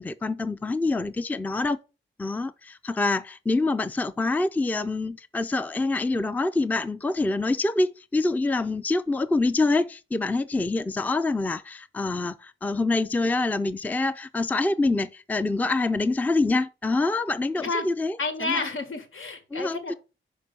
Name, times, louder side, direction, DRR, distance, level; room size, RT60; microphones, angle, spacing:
voice 1, 0.0-1.8 2.2-18.7 19.5-19.9, left 3 dB, 10° left, 0.4 m, -26 dB
voice 2, 17.6-17.9 18.2-19.9, left 3 dB, 80° left, 1.7 m, -30 dB
5.8 x 5.3 x 6.6 m
wide cardioid pair, 180°, 20 cm